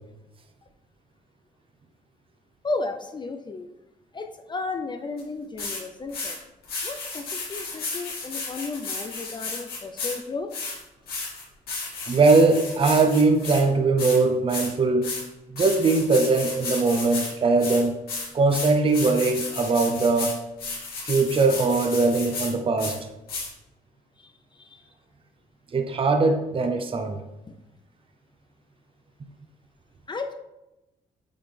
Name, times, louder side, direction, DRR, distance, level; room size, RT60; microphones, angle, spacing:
voice 1, 2.6-3.7 4.1-6.4 6.8-10.5 24.2-24.8 27.5-27.6 30.1-30.3, left 3 dB, 30° left, 6 dB, 0.5 m, -34 dB
sound 1, 5.2-5.3 5.6-5.8 6.1-6.4 6.6-10.2 10.5-13.6 14.0-14.2 14.5-14.7 15.0-15.2 15.6-17.3 17.6-22.5 22.8-23.0 23.3-23.5, left 4 dB, 85° left, 2.4 m, -33 dB
voice 2, 12.1-15.1 15.5-18.0 18.3-20.4 21.0-23.0 25.7-27.2, right 3 dB, 35° right, 5 dB, 0.7 m, -21 dB
8.5 x 4.0 x 3.4 m, 0.98 s
cardioid pair, 95°, 15 cm